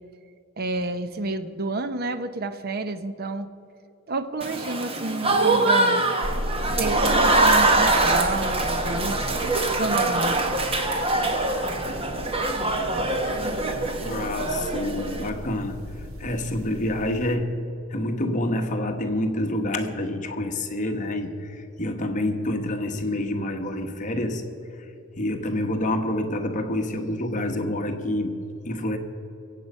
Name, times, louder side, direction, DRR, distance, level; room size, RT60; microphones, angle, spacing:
voice 1, 0.6-3.5 4.1-6.0 6.6-10.4, right 2 dB, 45° right, 11 dB, 0.7 m, -30 dB
Applause / Crowd, 4.4-15.3, right 2 dB, 25° right, 1.1 m, -23 dB
sound 1, 6.2-17.3, left 1 dB, 70° right, 1.3 m, -36 dB
voice 2, 14.0-15.8 16.2-17.6 17.9-24.4 25.2-29.0, left 1 dB, 35° left, 5 dB, 1.2 m, -27 dB
23.0 x 8.4 x 5.4 m, 3.0 s
head